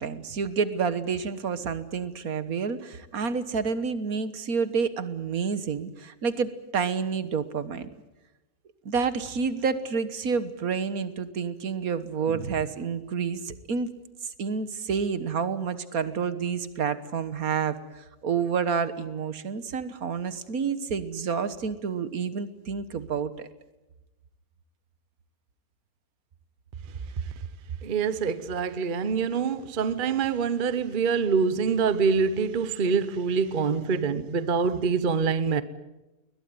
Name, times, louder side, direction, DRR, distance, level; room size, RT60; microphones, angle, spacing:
voice 1, 0.0-7.9 8.8-13.9 14.4-23.5, right 6 dB, 70° right, 1.7 m, -29 dB
voice 2, 27.8-35.6, right 5 dB, 40° right, 1.0 m, -25 dB
21.5 x 20.5 x 9.5 m
omnidirectional pair, 1.6 m